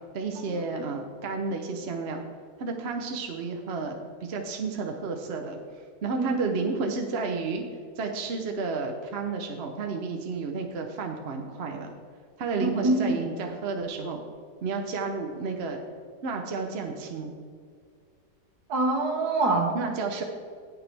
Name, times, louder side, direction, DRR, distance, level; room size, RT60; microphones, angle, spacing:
voice 1, 0.1-2.2 2.6-5.6 6.0-7.6 8.0-11.9 12.4-14.2 14.6-15.8 16.2-17.3 19.7-20.2, right 4 dB, 50° right, 3 dB, 0.8 m, -31 dB
voice 2, 6.2-6.6 12.6-13.2 18.7-19.8, right 2 dB, 70° right, 1 dB, 2.0 m, -25 dB
17.5 x 6.0 x 3.4 m, 2.1 s
omnidirectional pair, 1.8 m